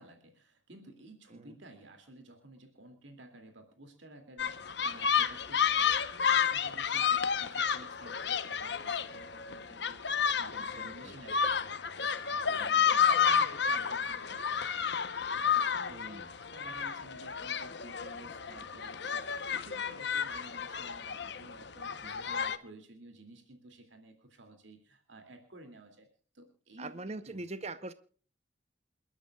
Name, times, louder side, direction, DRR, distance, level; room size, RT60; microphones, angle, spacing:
voice 1, 0.0-26.1 26.3-27.5, right 1 dB, 80° right, 5 dB, 2.5 m, -53 dB
sound 1, 4.4-22.6, left 7 dB, 65° left, 0.9 m, -31 dB
voice 2, 10.5-11.1 12.5-12.8 15.9-16.2 22.0-22.3 26.8-27.9, right 2 dB, 35° right, 12 dB, 0.8 m, -43 dB
28.5 x 12.5 x 2.3 m, 0.42 s
head